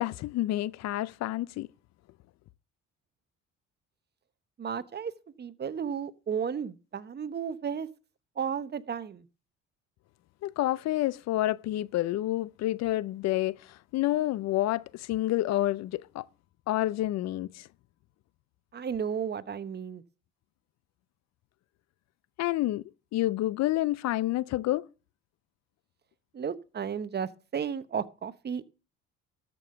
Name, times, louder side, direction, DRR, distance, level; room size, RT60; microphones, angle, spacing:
voice 1, 0.0-1.7 10.4-16.3 16.7-17.7 22.4-22.8 23.1-24.9, left 15 dB, 65° left, 0.5 m, -29 dB
voice 2, 4.6-5.1 5.4-7.9 8.4-9.2 18.7-20.0 26.3-28.7, right 7 dB, 35° right, 0.8 m, -33 dB
13.0 x 5.4 x 6.8 m
supercardioid pair, 85°, 29 cm